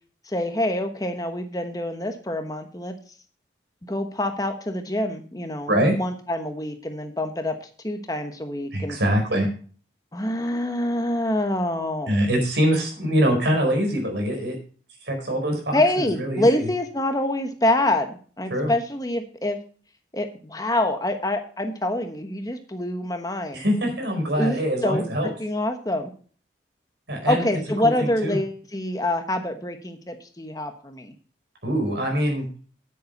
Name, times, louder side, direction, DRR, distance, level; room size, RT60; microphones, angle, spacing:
voice 1, 0.3-2.9 3.9-9.0 10.1-12.2 15.7-19.6 20.1-23.6 24.4-24.6 24.8-25.0 25.4-26.1 27.2-31.1, left 1 dB, 20° left, 6 dB, 1.1 m, -26 dB
voice 2, 8.7-9.5 12.1-14.5 15.0-16.7 18.5-18.7 23.5-25.3 27.1-27.5 27.8-28.4 31.6-32.4, equal, 75° right, 2 dB, 4.8 m, -23 dB
10.0 x 8.7 x 5.2 m, 0.42 s
head